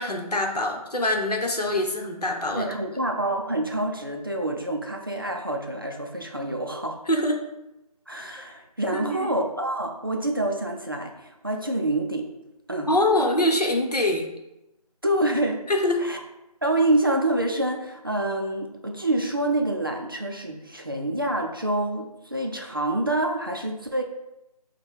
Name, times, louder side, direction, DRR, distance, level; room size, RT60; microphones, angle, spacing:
voice 1, 0.0-2.7 7.1-7.4 8.9-9.3 12.9-14.3 15.7-16.1, left 1 dB, 80° left, 2 dB, 0.9 m, -24 dB
voice 2, 2.5-7.0 8.1-12.3 12.7-12.9 15.0-15.7 16.0-16.2 16.6-24.0, right 1 dB, 35° right, 2 dB, 0.4 m, -27 dB
5.2 x 2.2 x 4.5 m, 0.92 s
figure-of-eight pair, 160°, 20 cm